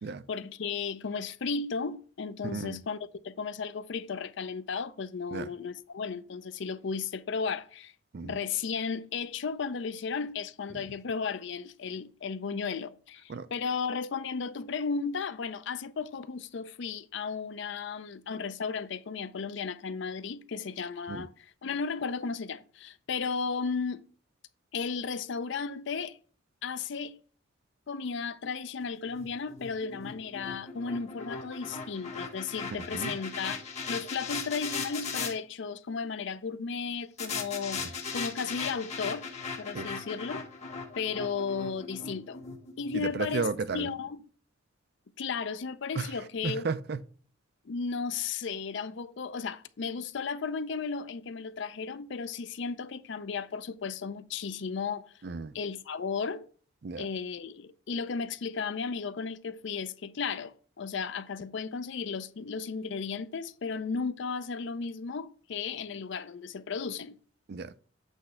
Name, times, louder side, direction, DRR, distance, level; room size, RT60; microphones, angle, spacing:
voice 1, 0.3-3.0 3.2-7.9 8.2-21.3 21.6-24.0 24.7-26.2 26.6-27.2 27.9-33.6 33.9-39.3 39.6-40.4 41.0-42.4 42.8-43.5 43.7-44.2 45.2-46.7 47.7-55.1 55.5-56.4 57.0-67.2, left 5 dB, 60° left, 0.5 m, -34 dB
voice 2, 2.4-2.8 5.3-5.5 8.1-8.4 10.7-10.8 13.3-13.5 21.1-21.3 32.9-33.2 37.8-37.9 39.7-40.0 42.9-43.9 45.9-46.1 46.4-47.0 55.2-55.5 56.8-57.1 67.5-67.8, right 4 dB, 50° right, 0.4 m, -34 dB
sound 1, 29.1-35.3 37.2-43.4, left 5 dB, 35° left, 1.1 m, -38 dB
8.1 x 3.2 x 5.7 m
head